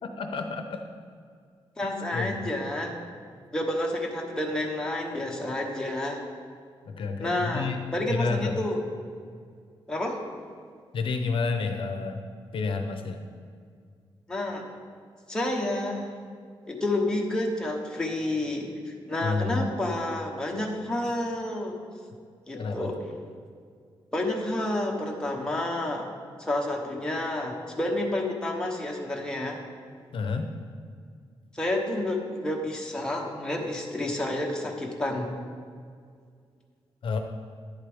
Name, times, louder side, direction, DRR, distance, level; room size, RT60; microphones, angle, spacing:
voice 1, 0.0-0.8 2.1-2.5 6.9-7.8 8.1-8.6 10.9-12.2 12.5-13.2 19.2-19.7 21.1-21.2 22.5-22.9 30.1-30.5 37.0-37.2, left 4 dB, 65° left, 5 dB, 0.6 m, -30 dB
voice 2, 1.8-3.0 3.5-6.2 7.2-8.8 9.9-10.2 14.3-14.7 15.3-16.1 16.7-21.8 22.5-22.9 24.1-26.1 26.4-29.6 31.5-35.4, left 1 dB, 10° left, -1 dB, 1.0 m, -29 dB
10.5 x 8.1 x 3.5 m, 2.1 s
wide cardioid pair, 160°, 10 cm